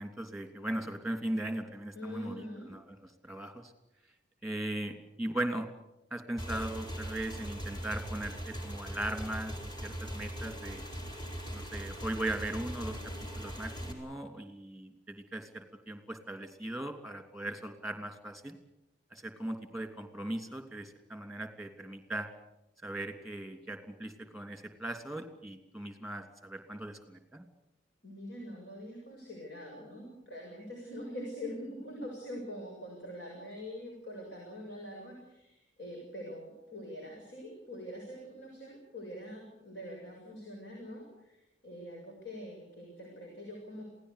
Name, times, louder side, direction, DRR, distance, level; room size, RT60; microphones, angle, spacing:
voice 1, 0.0-2.4 2.7-3.0 3.2-3.7 4.4-5.7 6.1-10.8 11.5-18.6 19.1-22.3 22.8-27.5, right 1 dB, ahead, 6 dB, 3.0 m, -38 dB
voice 2, 1.9-2.7 28.0-43.8, equal, 65° left, -1 dB, 6.9 m, -44 dB
Motorcycle / Engine, 6.4-13.9, equal, 25° left, 4.8 m, -40 dB
27.5 x 17.5 x 8.3 m, 0.87 s
head